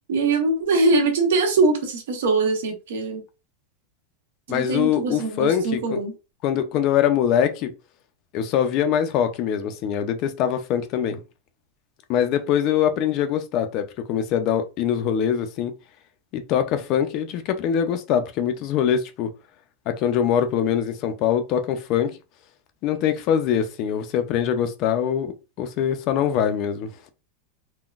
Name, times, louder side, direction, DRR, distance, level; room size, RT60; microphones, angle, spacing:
voice 1, 0.1-3.2 4.5-6.1, right 3 dB, 80° right, 1.1 m, -22 dB
voice 2, 4.5-6.0 6.4-7.7 8.3-11.2 12.1-15.7 16.3-19.3 19.9-22.2 22.8-25.3 25.6-27.1, left 9 dB, 35° left, 0.4 m, -23 dB
3.7 x 2.1 x 2.4 m
supercardioid pair, 170°, 0 cm